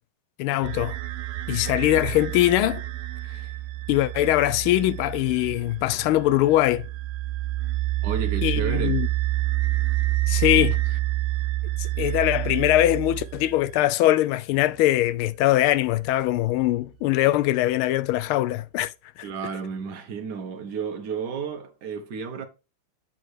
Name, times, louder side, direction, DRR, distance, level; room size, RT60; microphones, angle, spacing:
voice 1, 0.4-1.0 1.5-2.8 3.9-6.9 8.4-9.1 10.3-10.8 11.8-18.9 19.2-19.3, left 15 dB, 80° left, 1.4 m, -22 dB
sound 1, 0.6-13.7, right 16 dB, 80° right, 1.6 m, -28 dB
voice 2, 8.0-9.1 10.5-10.7 19.2-22.5, right 6 dB, 60° right, 1.4 m, -32 dB
7.7 x 4.7 x 4.7 m
omnidirectional pair, 2.4 m